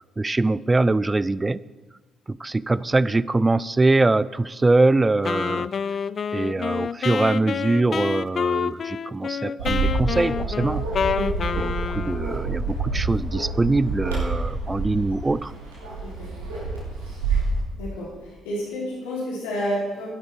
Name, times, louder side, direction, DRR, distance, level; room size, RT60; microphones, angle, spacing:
voice 1, 0.2-1.6 2.3-5.7 6.3-10.8 11.6-15.5, right 2 dB, 25° right, 19 dB, 0.4 m, -23 dB
Wind instrument woodwind instrument, 5.3-12.4, left 6 dB, 50° left, 0.4 m, -28 dB
Bark, 9.6-17.6, right 3 dB, 90° right, 3.3 m, -28 dB
voice 2, 16.0-16.3 17.8-20.1, equal, 80° left, -6 dB, 5.1 m, -30 dB
13.5 x 11.0 x 4.7 m, 1.2 s
hypercardioid pair, 45°, 0 cm